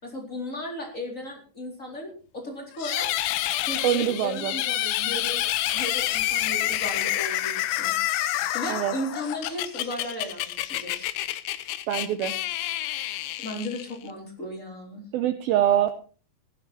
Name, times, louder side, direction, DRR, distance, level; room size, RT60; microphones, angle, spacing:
voice 1, 0.0-3.1 3.6-5.4 5.7-11.1 13.4-15.0, left 1 dB, 20° left, -1 dB, 3.9 m, -36 dB
sound 1, 2.8-14.1, left 14 dB, 90° left, 3.1 m, -28 dB
voice 2, 3.8-4.5 8.7-8.9 11.9-12.3 15.1-15.9, right 11 dB, 80° right, 10 dB, 2.3 m, -24 dB
15.5 x 12.5 x 4.3 m, 0.39 s
omnidirectional pair, 5.0 m